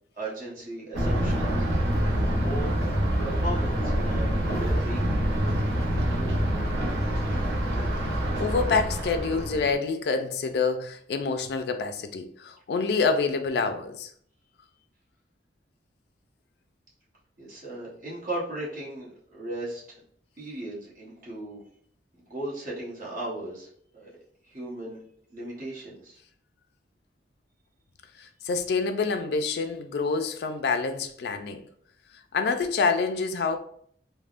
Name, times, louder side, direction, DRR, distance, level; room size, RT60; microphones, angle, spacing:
voice 1, 0.2-2.2 2.4-2.7 3.2-5.2 5.7-6.3 7.3-7.9 17.4-20.0 20.4-21.6 22.2-23.7 23.9-24.1 24.4-25.0 25.3-26.2, right 1 dB, 50° right, 1.0 m, -37 dB
Thunder, 0.9-9.7, equal, 75° right, 0.6 m, -26 dB
voice 2, 8.2-14.1 28.2-31.6 32.3-33.6, left 4 dB, 65° left, 0.3 m, -27 dB
3.4 x 2.1 x 2.4 m
head